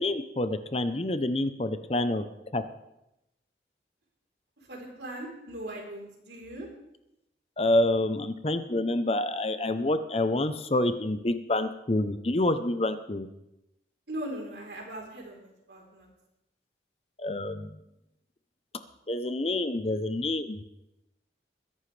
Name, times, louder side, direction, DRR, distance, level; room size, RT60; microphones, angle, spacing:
voice 1, 0.0-2.2 2.5-2.6 7.6-13.3 17.2-17.8 19.1-20.6, left 1 dB, 35° left, 10 dB, 0.7 m, -27 dB
voice 2, 4.7-6.7 14.1-16.1, right 1 dB, 75° right, -1 dB, 3.9 m, -39 dB
21.5 x 11.0 x 3.3 m, 0.87 s
head